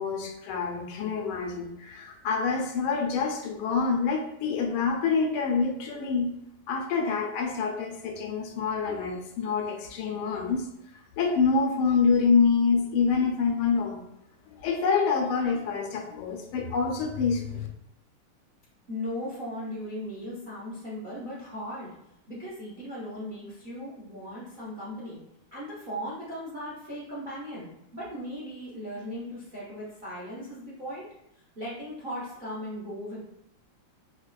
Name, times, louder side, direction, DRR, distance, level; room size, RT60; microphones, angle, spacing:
voice 1, 0.0-6.3 6.7-10.6 11.2-14.0 14.5-17.7, left 5 dB, 85° left, 2 dB, 1.5 m, -26 dB
voice 2, 18.9-21.9 22.3-25.2 25.5-31.1 31.5-33.2, equal, 70° right, -8 dB, 0.4 m, -37 dB
4.7 x 2.2 x 2.3 m, 0.78 s
omnidirectional pair, 2.3 m